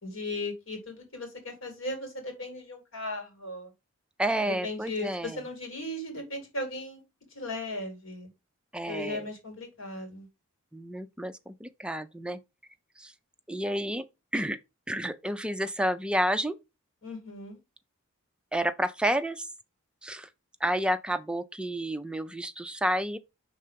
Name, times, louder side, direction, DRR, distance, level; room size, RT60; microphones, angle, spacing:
voice 1, 0.0-3.7 4.4-7.0 7.3-8.3 8.9-10.3 17.0-17.6, left 2 dB, 65° left, 2.6 m, -37 dB
voice 2, 4.2-5.4 8.7-9.3 10.7-12.4 13.0-13.1 13.5-14.0 14.3-14.6 14.9-16.6 18.5-19.5 20.0-20.3 20.6-23.2, right 1 dB, 5° right, 0.4 m, -30 dB
5.6 x 3.7 x 5.0 m
head